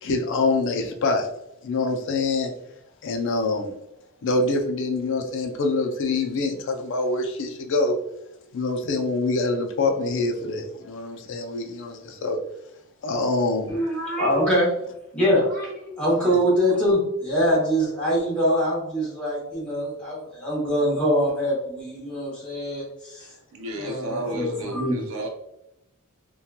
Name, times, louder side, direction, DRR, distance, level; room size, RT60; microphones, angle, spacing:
voice 1, 0.0-1.3 1.6-2.5 3.0-3.7 4.2-7.9 8.5-12.4 13.0-13.7, left 3 dB, 60° left, 3 dB, 0.4 m, -25 dB
voice 2, 13.7-14.7 15.1-23.3 23.8-25.0, equal, 5° left, -9 dB, 0.9 m, -24 dB
voice 3, 23.5-25.3, right 1 dB, 70° right, 2 dB, 0.6 m, -32 dB
2.9 x 2.2 x 2.2 m, 0.85 s
head